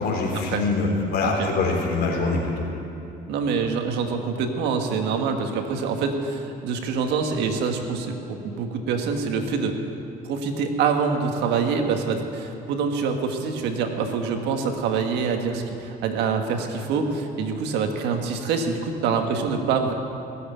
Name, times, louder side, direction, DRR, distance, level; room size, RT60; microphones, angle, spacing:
voice 1, 0.0-2.7, left 3 dB, 70° left, 0 dB, 3.6 m, -24 dB
voice 2, 3.3-9.8 10.2-19.9, right 5 dB, 85° right, 4 dB, 1.6 m, -25 dB
18.0 x 7.9 x 9.0 m, 2.9 s
cardioid pair, 110°, 17 cm